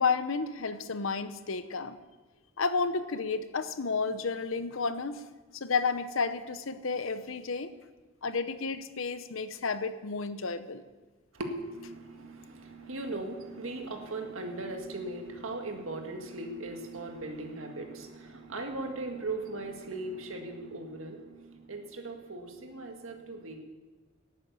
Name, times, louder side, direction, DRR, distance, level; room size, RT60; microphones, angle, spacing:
voice 1, 0.0-2.0 2.6-5.2 5.5-7.7 8.2-10.8, left 4 dB, 75° left, 12 dB, 0.8 m, -31 dB
voice 2, 11.3-23.6, right 2 dB, 80° right, 3 dB, 1.9 m, -38 dB
12.0 x 9.0 x 8.1 m, 1.3 s
head